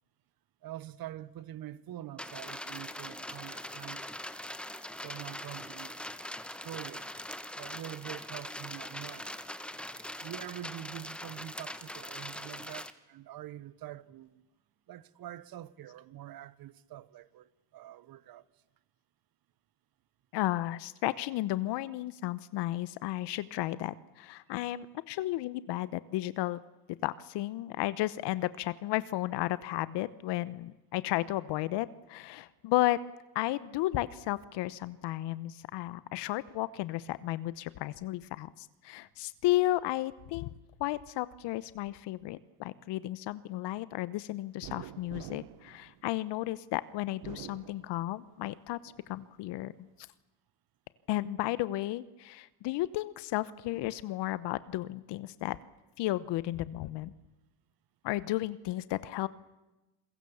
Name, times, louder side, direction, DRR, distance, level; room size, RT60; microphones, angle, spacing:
voice 1, 0.6-4.0 5.0-6.0 6.5-7.1 7.5-9.3 10.2-14.5 14.9-18.5, right 13 dB, 50° right, 1.2 m, -45 dB
sound 1, 2.2-12.9, left 1 dB, ahead, 1.3 m, -42 dB
voice 2, 20.3-26.6 27.0-33.0 33.3-40.5 40.8-49.7 51.1-55.6 56.0-57.1 58.0-59.3, left 16 dB, 65° left, 1.1 m, -33 dB
sound 2, 44.6-46.5 47.1-48.4 48.9-49.8, right 16 dB, 70° right, 1.1 m, -48 dB
28.0 x 22.5 x 7.1 m
supercardioid pair, 110°, 45 cm